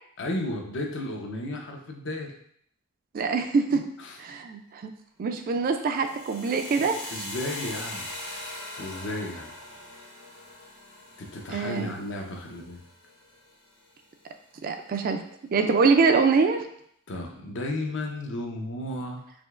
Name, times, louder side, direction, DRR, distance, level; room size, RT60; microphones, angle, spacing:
voice 1, 0.2-2.3 4.0-4.2 6.8-8.4 8.8-9.5 11.2-12.8 17.1-19.2, left 1 dB, 55° left, 1 dB, 0.7 m, -34 dB
voice 2, 3.1-3.9 4.2-4.9 5.2-7.0 11.5-11.9 14.6-15.2 15.5-16.7, right 4 dB, 40° right, 6 dB, 0.3 m, -24 dB
sound 1, 5.9-14.0, left 1 dB, 75° left, 1.4 m, -41 dB
4.9 x 3.1 x 2.4 m, 0.68 s
head